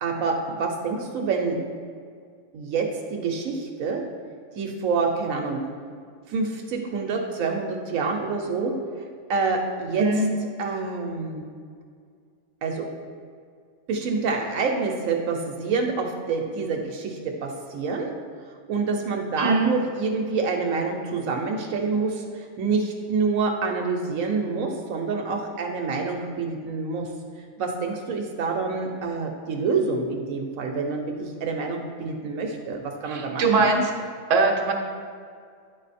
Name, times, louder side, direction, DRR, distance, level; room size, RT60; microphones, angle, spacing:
voice 1, 0.0-1.6 2.5-4.0 4.5-5.6 6.3-8.7 9.3-10.1 10.6-11.5 12.6-12.9 13.9-18.1 18.7-27.1 27.6-33.7, right 4 dB, 85° right, 2 dB, 1.1 m, -27 dB
voice 2, 10.0-10.3 19.4-19.7 33.1-33.8 34.3-34.7, right 3 dB, 70° right, 1 dB, 1.2 m, -21 dB
9.6 x 3.9 x 4.1 m, 2.1 s
omnidirectional pair, 1.4 m